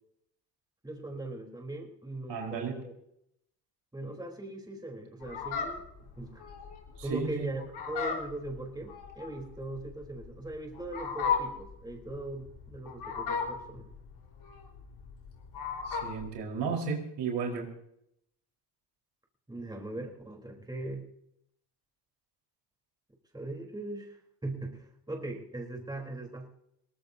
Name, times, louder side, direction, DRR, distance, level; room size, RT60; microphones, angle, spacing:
voice 1, 0.8-2.9 3.9-5.8 6.2-6.4 7.0-7.6 7.9-13.9 19.5-21.0 23.3-24.2 24.4-26.5, right 2 dB, 10° right, 1 dB, 3.7 m, -40 dB
voice 2, 2.3-2.8 7.0-7.5 15.9-17.7, right 5 dB, 80° right, 1 dB, 4.4 m, -33 dB
Fowl, 5.2-16.3, left 6 dB, 65° left, 4.4 m, -36 dB
22.0 x 18.5 x 2.8 m, 0.77 s
cardioid pair, 95°, 41 cm